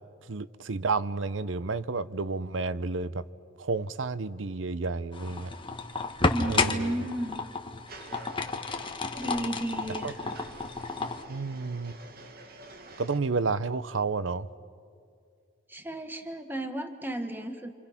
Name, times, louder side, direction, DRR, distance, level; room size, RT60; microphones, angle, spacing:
voice 1, 0.3-3.2 3.6-5.5 6.5-6.9 10.0-10.1 11.3-12.0 13.0-14.5, right 4 dB, 85° right, 15 dB, 0.7 m, -31 dB
sound 1, 5.1-11.2, left 3 dB, 25° left, 1.4 m, -31 dB
voice 2, 6.3-7.4 9.1-10.5 15.7-17.7, right 1 dB, 10° right, 6 dB, 1.6 m, -33 dB
sound 2, 7.9-13.2, right 2 dB, 55° right, 1.9 m, -49 dB
29.0 x 27.0 x 5.9 m, 2.3 s
head